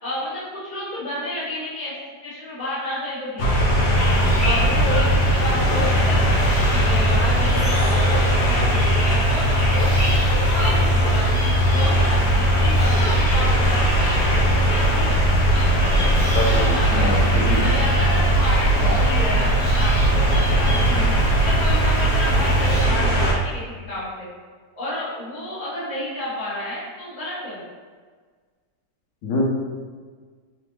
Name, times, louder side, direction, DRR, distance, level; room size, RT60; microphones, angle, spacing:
voice 1, 0.0-1.9 2.2-3.6 4.4-11.4 11.7-17.2 17.6-21.0 21.4-24.3 24.7-27.6, left 1 dB, 30° left, -11 dB, 1.1 m, -31 dB
sound 1, 3.4-23.3, right 1 dB, 65° left, 1.1 m, -19 dB
sound 2, 3.9-22.8, left 1 dB, 20° right, 0.4 m, -35 dB
voice 2, 16.3-17.6 18.8-19.0 20.9-21.3 29.2-29.4, left 2 dB, 85° left, -2 dB, 1.3 m, -26 dB
3.5 x 3.2 x 2.9 m, 1.5 s
omnidirectional pair, 1.9 m